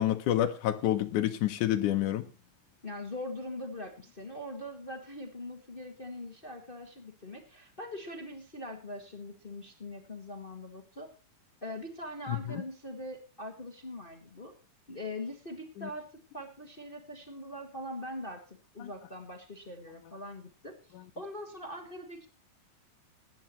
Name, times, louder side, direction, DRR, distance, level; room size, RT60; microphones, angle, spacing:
voice 1, 0.0-2.3 12.5-12.6 15.8-15.9 18.8-18.9, left 12 dB, 70° left, 2.1 m, -28 dB
voice 2, 2.8-11.1 11.6-14.5 14.9-16.1 16.3-18.4 18.7-20.8 21.1-22.3, left 1 dB, 30° left, 0.9 m, -42 dB
21.5 x 10.5 x 3.1 m
omnidirectional pair, 4.0 m